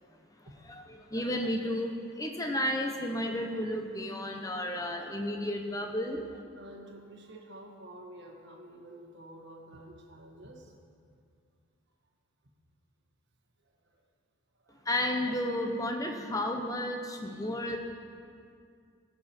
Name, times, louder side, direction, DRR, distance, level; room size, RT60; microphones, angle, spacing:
voice 1, 0.7-6.2 14.8-17.8, left 1 dB, 15° left, 3 dB, 0.8 m, -32 dB
voice 2, 6.5-10.8 13.6-14.0 14.6-14.9 17.5-17.8, right 1 dB, 55° right, 1 dB, 1.3 m, -50 dB
17.0 x 5.9 x 4.3 m, 2.3 s
head